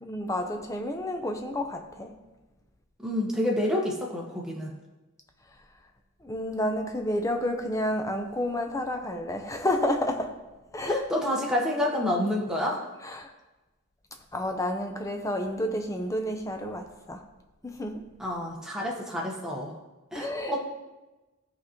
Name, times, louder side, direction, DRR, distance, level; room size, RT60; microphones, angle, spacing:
voice 1, 0.0-2.1 6.2-10.4 10.7-11.1 13.0-13.3 14.3-17.2 17.6-18.1 20.1-20.6, left 1 dB, 15° left, 5 dB, 0.6 m, -30 dB
voice 2, 3.0-4.7 10.9-12.8 18.2-19.7 20.1-20.6, left 1 dB, 5° right, -2 dB, 1.0 m, -28 dB
13.0 x 4.9 x 3.0 m, 1.1 s
head